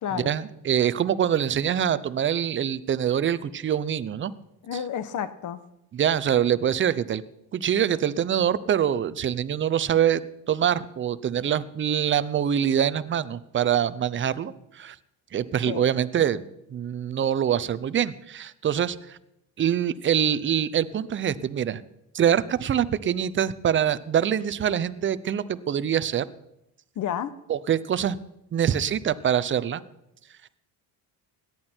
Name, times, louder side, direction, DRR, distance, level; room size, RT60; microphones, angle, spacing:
voice 1, 0.1-4.3 4.7-4.8 5.9-7.2 7.5-10.2 10.5-15.0 15.3-19.2 19.6-21.8 22.1-26.2 27.5-28.2 28.5-29.8, right 9 dB, 30° right, 16 dB, 0.6 m, -24 dB
voice 2, 4.7-5.6 15.7-15.8 27.0-27.3, left 9 dB, 50° left, 14 dB, 1.0 m, -30 dB
17.5 x 11.0 x 4.4 m, 0.85 s
cardioid pair, 110°, 39 cm